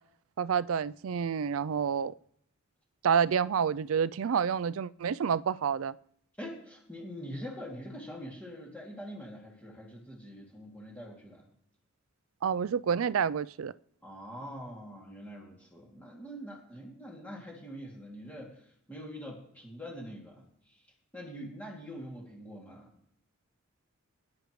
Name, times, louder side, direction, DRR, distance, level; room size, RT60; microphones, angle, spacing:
voice 1, 0.4-2.1 3.0-5.9 12.4-13.7, right 7 dB, 80° right, 0.4 m, -28 dB
voice 2, 6.4-11.5 14.0-20.8 21.1-22.9, equal, 10° left, 2.5 m, -44 dB
24.0 x 10.5 x 3.1 m
head